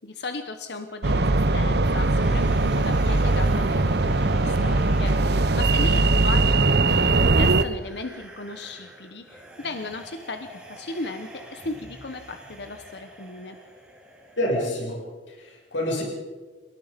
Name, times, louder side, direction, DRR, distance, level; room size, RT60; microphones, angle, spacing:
voice 1, 0.0-13.6, left 3 dB, 60° left, 7 dB, 1.2 m, -36 dB
sound 1, 1.0-7.6, right 2 dB, 60° right, 0.9 m, -20 dB
sound 2, 1.8-14.8, right 1 dB, 5° right, 4.3 m, -46 dB
voice 2, 14.4-15.0 15.3-16.0, left 1 dB, 85° left, 0 dB, 6.7 m, -27 dB
29.5 x 18.0 x 5.3 m, 1.4 s
head